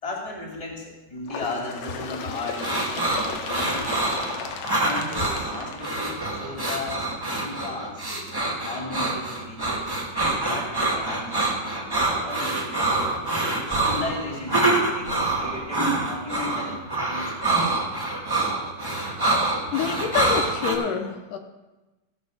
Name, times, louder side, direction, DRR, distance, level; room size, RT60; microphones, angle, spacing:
voice 1, 0.0-4.0 4.8-7.0 7.4-8.1 8.5-9.9 10.2-11.5 12.2-12.9 13.5-17.9, left 2 dB, 10° left, -2 dB, 2.1 m, -35 dB
Bird, 1.3-6.7 7.6-7.7 8.1-8.2 9.0-9.1 10.0-10.1 11.0-11.1, left 6 dB, 70° left, 2.0 m, -36 dB
sound 1, 2.6-20.8, right 2 dB, 20° right, 0.5 m, -26 dB
voice 2, 19.7-21.4, left 7 dB, 85° left, 5 dB, 2.5 m, -27 dB
16.0 x 5.4 x 6.5 m, 1.1 s
omnidirectional pair, 3.7 m